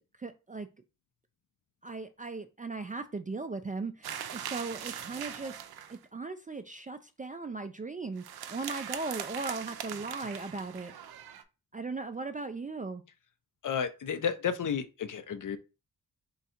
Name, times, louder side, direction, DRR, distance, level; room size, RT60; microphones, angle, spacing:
voice 1, 0.2-0.7 1.8-5.6 5.9-10.9 11.7-13.0, right 3 dB, 25° right, 0.3 m, -38 dB
sound 1, 4.0-6.0 8.2-11.4, right 9 dB, 75° right, 0.5 m, -41 dB
voice 2, 13.6-15.6, left 7 dB, 55° left, 0.6 m, -32 dB
3.8 x 2.3 x 4.2 m
cardioid pair, 75°, 38 cm